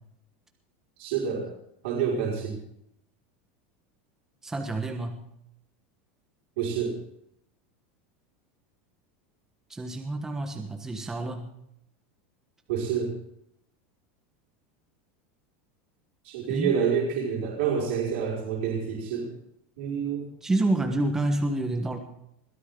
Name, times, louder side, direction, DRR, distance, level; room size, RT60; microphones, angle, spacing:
voice 1, 1.0-1.5 1.8-2.6 6.6-7.0 12.7-13.2 16.2-19.3 19.8-20.3, right 7 dB, 65° right, -3 dB, 5.2 m, -28 dB
voice 2, 4.4-5.3 9.7-11.5 16.5-16.7 20.4-22.0, right 2 dB, 5° right, 4 dB, 1.2 m, -28 dB
21.5 x 14.0 x 3.8 m, 0.76 s
supercardioid pair, 175°, 6 cm